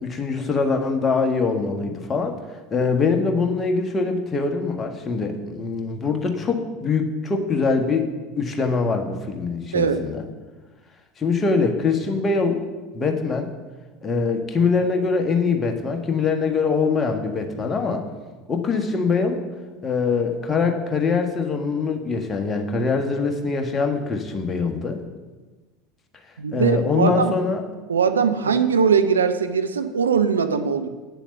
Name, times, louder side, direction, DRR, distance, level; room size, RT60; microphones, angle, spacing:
voice 1, 0.0-2.4 2.7-10.2 11.2-12.6 12.9-13.5 14.0-18.0 18.5-19.4 19.8-25.0 26.5-27.6, left 4 dB, 25° left, 4 dB, 1.5 m, -23 dB
voice 2, 26.4-27.3 27.9-30.9, right 6 dB, 75° right, 8 dB, 0.6 m, -20 dB
9.1 x 7.0 x 7.1 m, 1.2 s
figure-of-eight pair, 70°, 0 cm